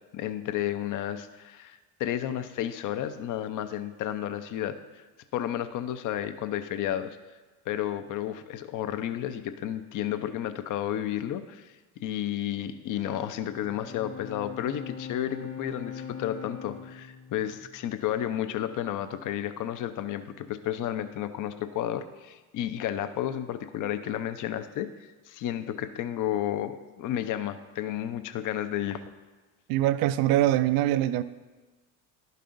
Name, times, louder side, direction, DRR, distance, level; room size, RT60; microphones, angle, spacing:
voice 1, 0.1-4.8 5.3-7.2 7.7-11.7 12.0-24.9 25.3-29.0, left 11 dB, 45° left, 10 dB, 0.6 m, -32 dB
Bowed string instrument, 13.0-18.5, left 7 dB, 75° left, 1.5 m, -42 dB
voice 2, 29.7-31.2, right 13 dB, 55° right, 15 dB, 0.5 m, -23 dB
11.5 x 5.4 x 2.6 m, 1.3 s
hypercardioid pair, 70°, 44 cm